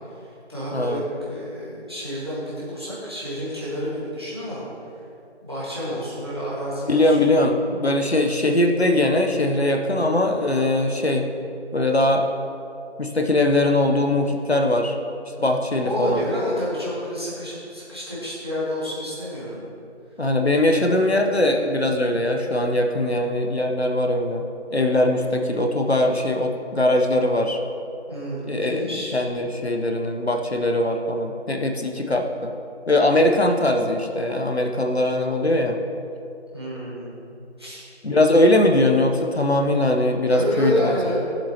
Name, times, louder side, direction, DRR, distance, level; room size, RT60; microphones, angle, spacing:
voice 1, 0.1-4.6 5.4-7.2 15.8-19.6 20.7-21.0 28.1-29.1 36.5-37.2 37.6-37.8 40.3-41.2, equal, 20° right, -8 dB, 1.6 m, -29 dB
voice 2, 0.7-1.0 6.9-11.3 11.7-12.2 13.0-14.9 15.4-16.2 20.2-24.4 24.7-27.6 28.5-28.8 29.1-32.5 32.9-35.8 38.0-40.9, left 1 dB, 65° left, 3 dB, 0.9 m, -21 dB
15.0 x 7.5 x 2.9 m, 2.7 s
figure-of-eight pair, 175°, 35 cm